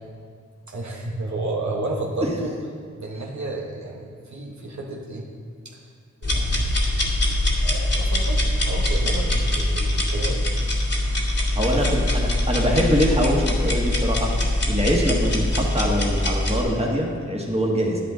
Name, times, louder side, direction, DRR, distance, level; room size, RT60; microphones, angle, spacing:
voice 1, 0.7-2.5 3.0-5.2 5.6-5.8 6.2-6.7 7.6-10.5 11.6-11.8, right 2 dB, 70° right, -1 dB, 1.2 m, -31 dB
sound 1, 6.2-16.6, left 1 dB, 55° left, 2.3 m, -23 dB
voice 2, 11.5-14.3 14.6-18.0, equal, 20° right, -1 dB, 1.6 m, -23 dB
10.0 x 10.0 x 3.8 m, 2.1 s
wide cardioid pair, 65°, 30 cm